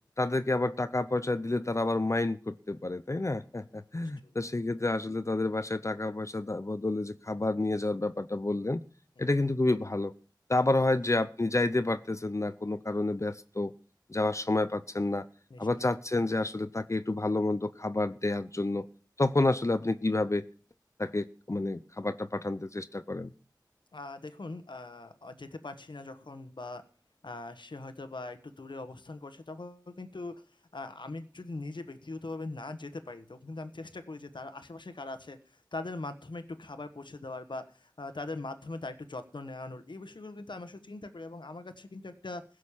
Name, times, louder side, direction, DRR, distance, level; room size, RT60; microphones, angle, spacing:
voice 1, 0.2-8.8 9.2-10.1 10.5-13.7 14.1-15.3 15.6-18.9 19.2-20.4 21.0-23.3, left 2 dB, 40° left, 13 dB, 0.6 m, -29 dB
voice 2, 23.9-26.8 27.2-30.4 30.7-42.4, left 2 dB, 85° left, 10 dB, 1.2 m, -41 dB
16.0 x 6.5 x 7.2 m, 0.40 s
wide cardioid pair, 45°, 8 cm